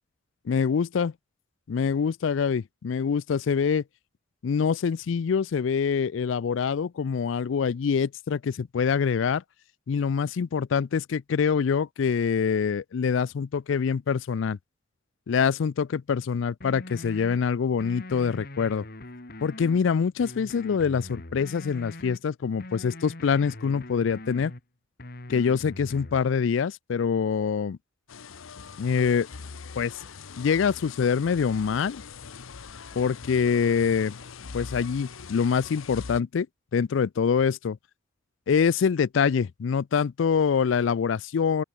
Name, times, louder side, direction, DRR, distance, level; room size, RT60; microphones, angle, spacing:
voice 1, 0.5-1.1 1.7-3.8 4.4-9.4 9.9-14.6 15.3-18.8 19.4-24.5 25.3-27.8 28.8-29.3 29.8-29.9 30.4-32.0 33.0-34.2 34.5-36.5 36.7-37.8 38.5-41.6, left 6 dB, 70° left, 0.4 m, -25 dB
sound 1, 16.6-17.4 17.8-19.8 20.2-22.2 22.6-24.6 25.0-26.2, left 2 dB, 50° left, 2.1 m, -42 dB
sound 2, 28.1-36.2, left 5 dB, 90° left, 0.8 m, -42 dB
sound 3, 29.5-31.2 32.0-36.0, left 2 dB, 25° left, 7.4 m, -63 dB
open air
head